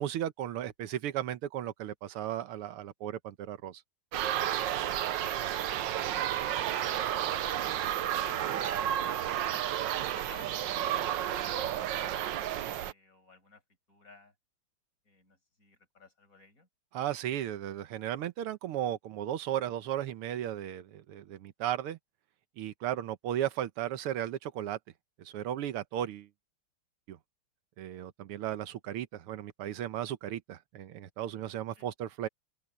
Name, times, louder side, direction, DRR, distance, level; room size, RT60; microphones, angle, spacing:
voice 1, 0.0-3.8 16.9-22.0 22.6-24.8 25.3-26.3 27.1-27.2 27.8-32.3, right 11 dB, 90° right, 1.9 m, -35 dB
Kids playing on a school-yard, 4.1-12.9, right 11 dB, 65° right, 1.3 m, -31 dB
voice 2, 5.0-5.7 6.3-13.6 13.9-14.3 15.0-16.7 31.8-31.9, left 3 dB, 40° left, 6.7 m, -56 dB
open air
omnidirectional pair, 2.4 m